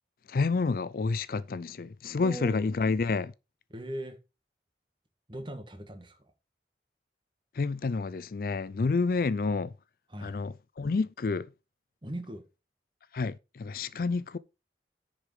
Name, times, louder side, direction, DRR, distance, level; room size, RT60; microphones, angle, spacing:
voice 1, 0.3-3.3 7.6-9.7 10.2-11.5 13.1-14.4, left 4 dB, 50° left, 0.4 m, -29 dB
voice 2, 2.2-2.6 3.7-4.2 5.3-6.2 10.1-10.4 12.0-12.4, right 1 dB, 25° right, 1.7 m, -39 dB
10.0 x 5.0 x 4.9 m
head